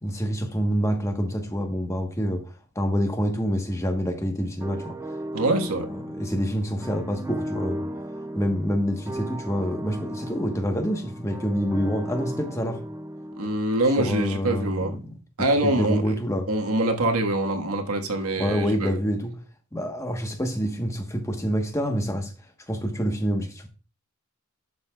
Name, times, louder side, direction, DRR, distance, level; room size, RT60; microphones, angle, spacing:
voice 1, 0.0-5.0 5.4-5.6 5.9-7.9 8.3-12.8 14.0-15.2 15.6-16.5 18.4-19.4 19.7-22.3 22.7-23.7, equal, 15° left, 1.1 m, -27 dB
sound 1, 4.6-13.5, right 1 dB, 15° right, 0.4 m, -35 dB
voice 2, 5.3-5.9 13.4-15.0 15.4-16.1 16.5-19.0, right 1 dB, 80° right, 1.4 m, -24 dB
11.0 x 6.9 x 2.3 m
head